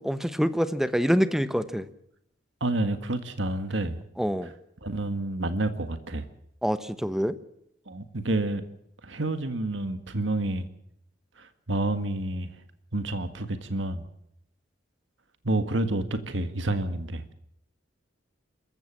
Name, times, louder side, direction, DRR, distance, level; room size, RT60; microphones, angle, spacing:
voice 1, 0.0-1.9 4.2-4.5 6.6-7.4, equal, ahead, 12 dB, 1.0 m, -26 dB
voice 2, 2.6-4.0 4.8-6.3 7.9-8.6 9.0-10.7 11.4-12.5 12.9-14.0 15.4-17.3, right 2 dB, 70° right, 9 dB, 1.7 m, -29 dB
27.0 x 15.0 x 7.3 m, 0.76 s
head